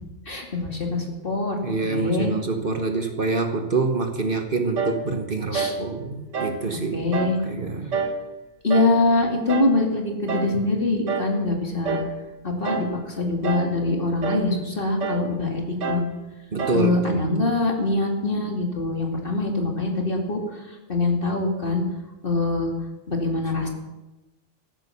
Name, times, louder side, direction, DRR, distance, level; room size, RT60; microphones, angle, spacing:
voice 1, 0.3-1.6 1.9-2.3 5.5-5.7 6.9-7.4 8.6-12.0 12.4-16.1 16.7-21.8 22.2-22.7 23.1-23.7, left 2 dB, 45° left, 1 dB, 2.6 m, -24 dB
voice 2, 1.6-7.1 7.4-7.9 16.5-17.3, right 3 dB, 45° right, 6 dB, 1.4 m, -26 dB
sound 1, 4.8-5.0 5.5-5.8 6.3-6.6 7.1-7.4 7.9-8.2 8.7-9.0 9.5-9.8 10.3-10.6 11.1-11.4 11.8-12.1 12.6-13.0 13.4-13.8 14.2-14.5 15.0-15.3 15.8-16.1 16.6-16.9, right 4 dB, 70° right, 1.5 m, -28 dB
14.0 x 12.0 x 7.0 m, 1.1 s
omnidirectional pair, 1.3 m